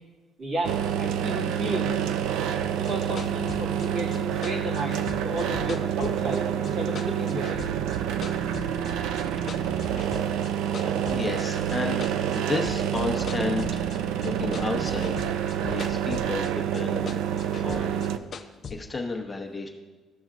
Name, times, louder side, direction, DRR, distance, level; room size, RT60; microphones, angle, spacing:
voice 1, 0.4-2.2 2.8-7.7, right 1 dB, 50° right, -3 dB, 2.1 m, -33 dB
sound 1, 0.6-18.2, right 9 dB, 85° right, 0.4 m, -28 dB
sound 2, 2.6-6.7 7.0-8.9 9.2-10.5 10.7-14.3 14.5-16.5 16.7-18.8, left 6 dB, 45° left, 0.6 m, -40 dB
voice 2, 9.6-10.3 10.7-13.9 14.2-15.3 15.6-18.1 18.4-19.7, left 3 dB, 20° left, 1 dB, 1.0 m, -33 dB
14.5 x 6.1 x 2.5 m, 1.2 s
cardioid pair, 115°, 0 cm